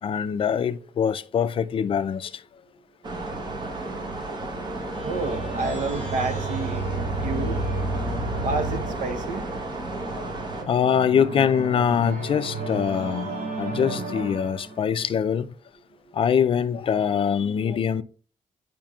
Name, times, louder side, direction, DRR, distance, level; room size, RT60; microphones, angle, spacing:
voice 1, 0.0-2.4 10.0-10.3 10.6-15.5 16.1-18.0, left 8 dB, 40° left, 0.4 m, -24 dB
sound 1, 3.0-10.6, right 2 dB, 35° right, 1.1 m, -33 dB
sound 2, 4.9-15.0, right 2 dB, 50° right, 3.2 m, -32 dB
voice 2, 5.0-6.8 7.2-7.6 8.4-9.5, right 3 dB, 70° right, 0.9 m, -29 dB
8.8 x 5.1 x 2.3 m
wide cardioid pair, 160°, 14 cm